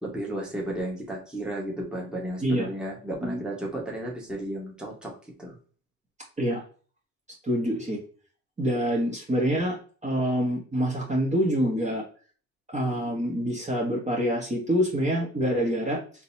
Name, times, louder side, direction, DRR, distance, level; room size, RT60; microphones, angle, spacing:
voice 1, 0.0-5.1 5.4-5.6, right 1 dB, ahead, -2 dB, 1.3 m, -33 dB
voice 2, 7.4-8.0 8.6-9.8 10.0-12.0 12.7-16.0, equal, 20° right, -3 dB, 1.2 m, -26 dB
3.9 x 2.9 x 2.7 m, 0.41 s
supercardioid pair, 75°, 36 cm